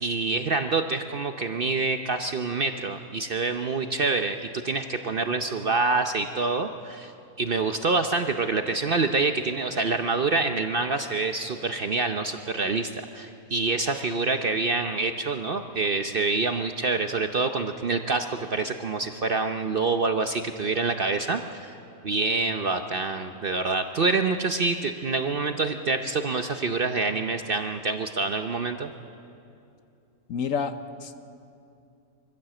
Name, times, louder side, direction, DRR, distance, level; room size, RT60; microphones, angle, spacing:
voice 1, 0.0-7.1 7.4-21.7 22.0-28.9, right 3 dB, 50° right, 7 dB, 0.7 m, -26 dB
voice 2, 30.3-31.2, left 6 dB, 65° left, 10 dB, 1.2 m, -30 dB
24.0 x 15.0 x 7.6 m, 2.6 s
omnidirectional pair, 1.6 m